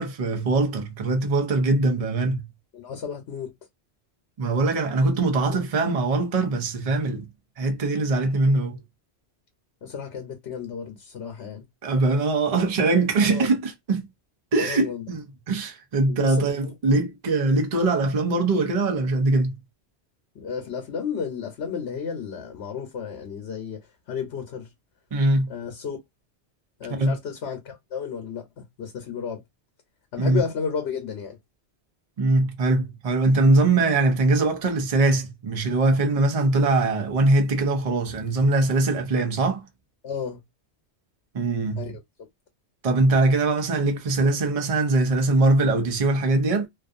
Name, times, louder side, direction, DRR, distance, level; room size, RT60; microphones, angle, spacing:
voice 1, 0.0-2.5 4.4-7.3 7.6-8.8 11.8-14.1 14.5-19.5 25.1-25.5 26.9-27.1 30.2-30.4 32.2-39.7 41.3-41.9 42.8-46.7, right 2 dB, 40° right, 0.6 m, -22 dB
voice 2, 2.7-3.5 5.5-5.6 9.8-11.6 13.2-13.5 14.6-15.0 16.1-16.7 20.3-23.8 24.1-24.7 25.5-26.0 26.8-29.4 30.1-31.4 40.0-40.4 41.8-41.9, left 6 dB, 75° left, 1.0 m, -33 dB
2.6 x 2.4 x 2.4 m
omnidirectional pair, 1.2 m